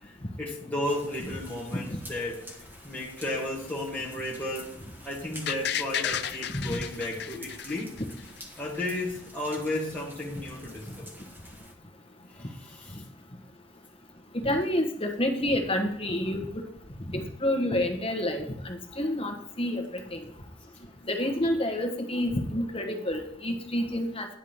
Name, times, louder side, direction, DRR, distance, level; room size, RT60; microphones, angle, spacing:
voice 1, 0.0-4.8 5.0-8.0 8.6-11.1 12.3-13.0, left 1 dB, 10° left, -5 dB, 1.5 m, -34 dB
sound 1, 0.8-11.7, equal, 10° right, 1.6 m, -49 dB
sound 2, 5.5-8.4 8.7-8.8, left 9 dB, 60° left, 0.5 m, -32 dB
voice 2, 14.3-16.5 17.1-19.8 20.1-20.2 21.1-24.3, left 1 dB, 30° left, 3 dB, 1.3 m, -28 dB
10.5 x 4.8 x 7.2 m, 0.70 s
head